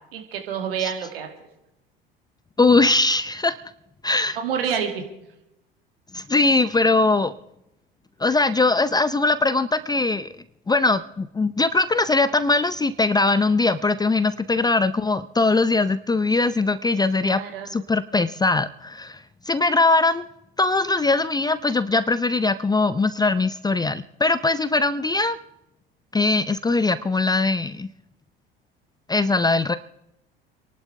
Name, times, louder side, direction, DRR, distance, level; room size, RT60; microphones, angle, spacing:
voice 1, 0.1-1.3 4.4-5.0 17.2-17.7, right 7 dB, 80° right, 4 dB, 2.4 m, -28 dB
voice 2, 2.6-3.6 4.0-4.4 6.1-7.3 8.2-10.3 10.7-20.3 20.6-25.4 26.1-27.9 29.1-29.8, left 3 dB, 15° left, 14 dB, 0.6 m, -21 dB
28.5 x 11.5 x 3.3 m, 0.87 s
hypercardioid pair, 70°, 29 cm